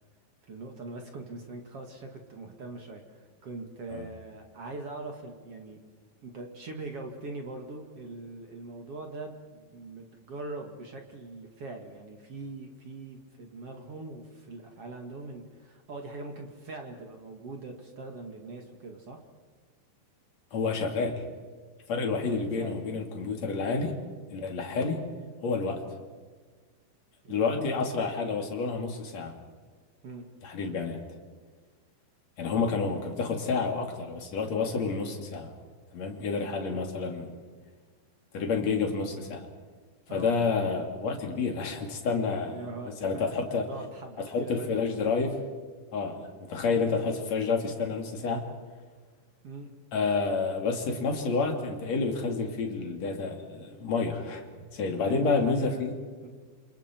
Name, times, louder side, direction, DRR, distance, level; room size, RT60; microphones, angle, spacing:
voice 1, 0.4-5.8 6.2-19.2 22.6-22.9 23.8-23.9 27.2-27.5 30.0-30.2 36.7-36.8 40.1-40.3 42.5-45.2 49.4-49.7 55.0-55.8 56.2-56.3, right 2 dB, 45° right, 3 dB, 2.2 m, -42 dB
voice 2, 20.5-21.2 21.9-24.0 24.3-25.1 25.4-25.8 27.3-29.4 30.4-31.0 32.4-35.5 35.9-37.3 38.3-39.5 40.1-43.7 44.2-45.4 45.9-48.5 49.9-54.4 54.7-55.9, left 4 dB, 40° left, 2 dB, 3.3 m, -29 dB
28.5 x 28.0 x 4.6 m, 1.5 s
omnidirectional pair, 5.4 m